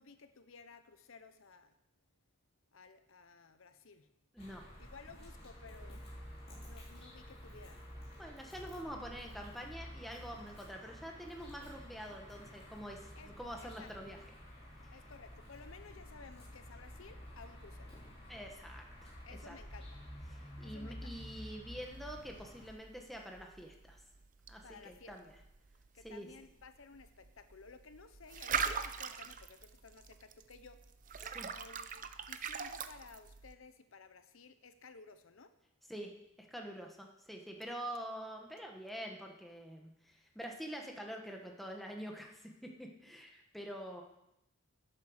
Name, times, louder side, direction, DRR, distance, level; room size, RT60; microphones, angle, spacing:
voice 1, 0.0-1.7 2.7-4.1 4.8-6.0 6.6-7.8 13.2-13.3 13.6-13.9 14.9-18.0 19.2-20.0 20.6-21.1 24.6-25.1 25.9-30.8 31.6-35.5, left 4 dB, 75° left, 10 dB, 0.8 m, -56 dB
voice 2, 4.3-4.7 8.2-14.2 18.3-19.2 19.5-19.6 20.3-24.0 24.5-25.3 26.0-26.3 31.2-31.5 35.9-36.1 36.4-44.0, equal, ahead, 1 dB, 1.3 m, -46 dB
sound 1, 4.4-22.7, equal, 30° left, 3.9 m, -51 dB
sound 2, 21.8-33.5, right 6 dB, 40° right, 0.6 m, -43 dB
11.0 x 8.6 x 6.5 m, 0.86 s
head